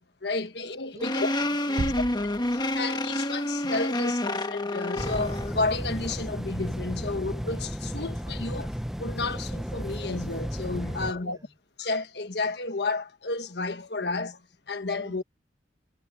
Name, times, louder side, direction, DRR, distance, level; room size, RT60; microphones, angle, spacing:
voice 1, 0.0-1.3 2.5-8.7 9.0-11.4 11.8-15.2, left 3 dB, 65° left, 1.5 m, -32 dB
voice 2, 0.9-2.2 11.0-11.6 14.9-15.2, right 1 dB, 20° right, 4.8 m, -48 dB
sound 1, 1.0-5.6, left 1 dB, 25° left, 1.3 m, -28 dB
sound 2, 1.8-3.2, right 2 dB, 60° right, 0.7 m, -35 dB
sound 3, 5.0-11.1, equal, ahead, 0.6 m, -33 dB
head